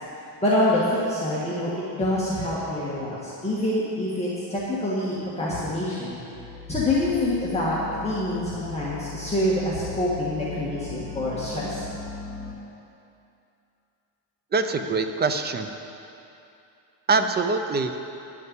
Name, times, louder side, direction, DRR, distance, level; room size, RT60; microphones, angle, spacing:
voice 1, 0.4-6.2 6.7-11.8, left 1 dB, 15° left, -8 dB, 1.6 m, -26 dB
sound 1, 6.3-12.5, left 4 dB, 5° right, 1.7 m, -38 dB
voice 2, 14.5-15.7 17.1-17.9, right 4 dB, 25° right, 7 dB, 0.5 m, -24 dB
10.5 x 6.7 x 8.4 m, 2.7 s
cardioid pair, 150°, 43 cm